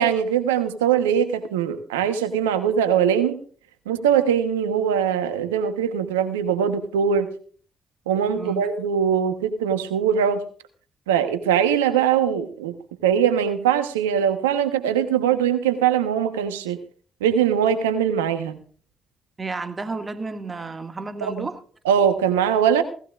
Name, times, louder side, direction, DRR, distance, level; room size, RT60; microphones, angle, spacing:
voice 1, 0.0-3.4 3.9-7.3 8.1-10.4 11.1-12.7 13.0-16.8 17.2-18.6 21.2-21.5 21.8-22.8, right 8 dB, 90° right, 1.2 m, -21 dB
voice 2, 8.4-8.7 19.4-21.6, right 4 dB, 35° right, 2.1 m, -32 dB
17.0 x 16.0 x 2.5 m
hypercardioid pair, 40°, 0 cm